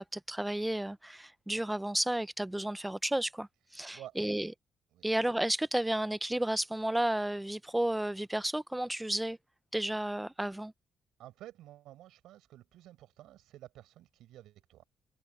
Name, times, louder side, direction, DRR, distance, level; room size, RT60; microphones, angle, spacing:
voice 1, 0.0-3.5 3.7-4.5 5.0-9.4 9.7-10.7, right 1 dB, 10° right, 0.8 m, -32 dB
voice 2, 11.2-14.9, right 14 dB, 85° right, 7.2 m, -51 dB
open air
cardioid pair, 90°, 0 cm